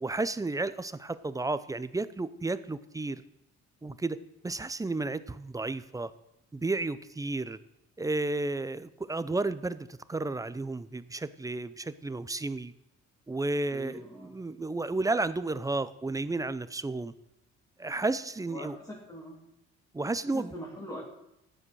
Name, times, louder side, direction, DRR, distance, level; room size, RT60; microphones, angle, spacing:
voice 1, 0.0-3.2 3.8-4.2 4.4-6.1 6.5-7.6 8.0-12.7 13.3-17.1 17.8-18.8 19.9-20.5, right 2 dB, 10° right, 14 dB, 0.6 m, -32 dB
voice 2, 13.7-14.3 18.5-19.4 20.3-21.0, equal, 10° left, -4 dB, 3.4 m, -42 dB
14.0 x 10.0 x 6.3 m, 0.83 s
cardioid pair, 125°, 29 cm